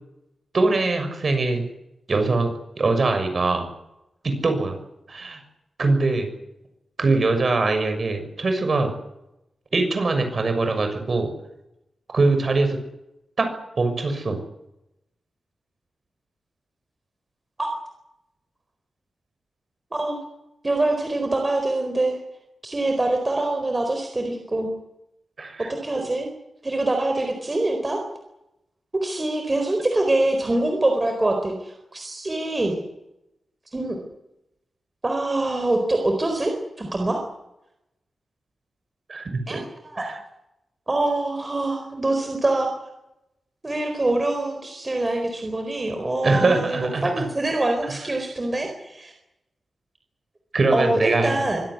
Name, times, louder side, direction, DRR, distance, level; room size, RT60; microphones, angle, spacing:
voice 1, 0.5-1.6 2.1-3.7 4.2-4.8 5.1-5.4 5.8-6.3 7.0-8.9 9.7-11.3 12.1-12.8 13.4-13.5 13.8-14.4 25.4-25.7 39.1-39.6 40.0-40.2 46.2-47.3 47.9-48.0 50.5-51.3, right 3 dB, 45° right, 6 dB, 6.6 m, -22 dB
voice 2, 20.6-22.2 22.6-24.7 25.7-26.3 26.6-28.0 28.9-32.8 33.7-34.0 35.0-37.2 39.5-40.1 40.9-42.7 43.6-49.1 50.7-51.6, right 2 dB, 25° right, 4 dB, 4.3 m, -24 dB
25.0 x 17.0 x 9.7 m, 0.87 s
wide cardioid pair, 125°, 0 cm